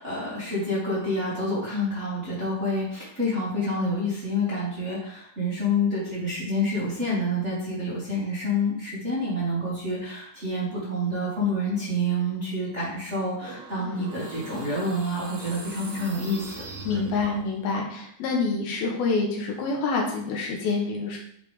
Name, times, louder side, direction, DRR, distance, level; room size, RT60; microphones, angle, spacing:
voice 1, 0.0-16.7, left 1 dB, 25° right, -8 dB, 2.1 m, -28 dB
sound 1, 13.3-17.6, right 3 dB, 65° right, 3.8 m, -41 dB
voice 2, 16.9-21.2, left 4 dB, 90° left, 0 dB, 3.4 m, -27 dB
10.5 x 5.3 x 3.6 m, 0.69 s
omnidirectional pair, 4.2 m